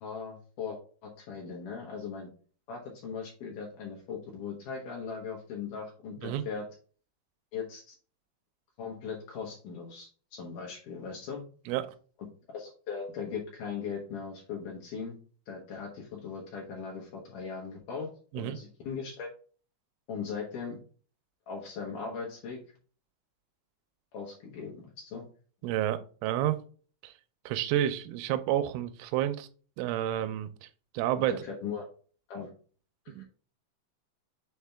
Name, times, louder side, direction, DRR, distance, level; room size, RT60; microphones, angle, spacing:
voice 1, 0.0-2.3 2.7-6.7 7.5-7.9 8.8-11.4 12.5-15.2 15.5-18.1 18.3-19.3 20.1-20.8 21.5-22.6 24.1-25.2 31.2-31.8 32.3-32.5, left 6 dB, 80° left, 1.8 m, -39 dB
voice 2, 25.6-26.6 27.0-27.1 27.5-29.5 29.8-30.5 30.9-31.4 33.1-33.3, right 12 dB, 85° right, 3.1 m, -30 dB
7.4 x 4.2 x 3.4 m
omnidirectional pair, 5.8 m